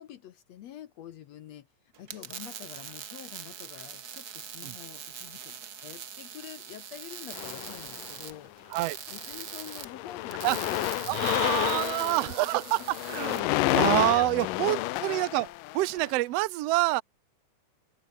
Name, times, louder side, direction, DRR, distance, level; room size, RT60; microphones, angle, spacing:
voice 1, 0.0-1.7 2.0-8.5 9.1-12.9 14.1-15.0, left 11 dB, 65° left, 1.9 m, -46 dB
sound 1, 1.9-13.4, right 7 dB, 55° right, 1.0 m, -42 dB
sound 2, 7.3-8.3 9.1-9.3 9.6-16.1, left 19 dB, 85° left, 2.3 m, -30 dB
voice 2, 11.1-17.0, right 18 dB, 80° right, 1.4 m, -27 dB
omnidirectional pair, 3.9 m